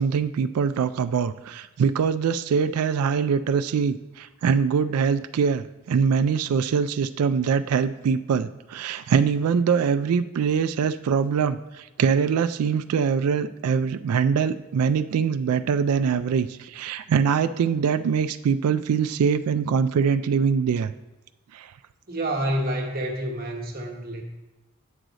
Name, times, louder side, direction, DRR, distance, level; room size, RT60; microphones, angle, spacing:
voice 1, 0.0-20.9 21.5-21.7, right 6 dB, 85° right, 11 dB, 0.3 m, -23 dB
voice 2, 22.1-24.2, right 1 dB, 40° right, 1 dB, 1.1 m, -28 dB
9.0 x 6.2 x 4.0 m, 1.1 s
head